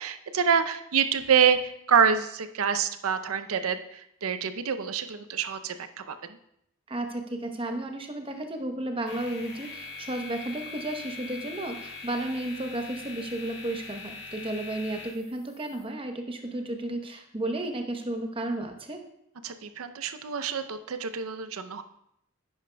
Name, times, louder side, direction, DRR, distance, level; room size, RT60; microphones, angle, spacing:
voice 1, 0.0-6.4 19.4-21.8, right 7 dB, 80° right, 10 dB, 0.6 m, -26 dB
voice 2, 6.9-19.0, right 1 dB, 25° right, 5 dB, 0.8 m, -33 dB
sound 1, 9.1-15.8, left 4 dB, 50° left, 1.6 m, -42 dB
10.5 x 10.0 x 2.2 m, 0.77 s
head